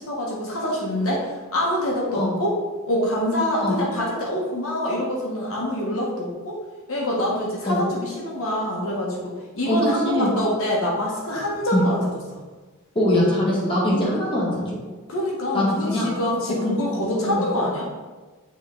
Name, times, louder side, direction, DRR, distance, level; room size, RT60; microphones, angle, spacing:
voice 1, 0.0-2.5 2.9-6.6 6.9-12.0 12.3-12.4 13.9-14.2 15.1-17.9, left 1 dB, 70° left, -3 dB, 1.3 m, -25 dB
voice 2, 10.0-10.4 11.7-11.8 12.9-14.7 15.5-16.2 16.6-17.5, left 1 dB, 25° left, -6 dB, 1.6 m, -23 dB
9.1 x 3.1 x 3.8 m, 1.3 s
head